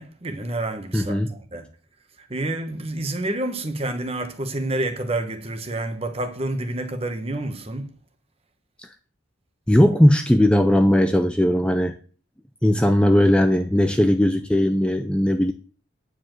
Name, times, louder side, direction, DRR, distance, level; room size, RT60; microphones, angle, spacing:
voice 1, 0.0-1.7 2.2-7.9, right 2 dB, 30° right, 1.3 m, -29 dB
voice 2, 0.9-1.4 8.8-8.9 9.7-12.0 12.6-15.5, equal, 5° left, 0.4 m, -18 dB
9.7 x 5.0 x 7.6 m
head